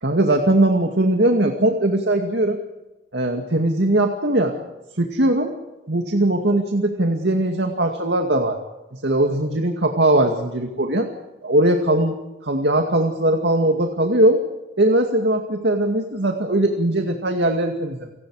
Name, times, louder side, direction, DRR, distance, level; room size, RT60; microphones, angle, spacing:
voice 1, 0.0-2.6 3.1-4.5 5.0-5.5 5.9-8.6 9.0-11.1 11.4-14.4 14.8-18.1, right 1 dB, 75° right, 4 dB, 2.3 m, -20 dB
30.0 x 18.5 x 4.9 m, 1.0 s
head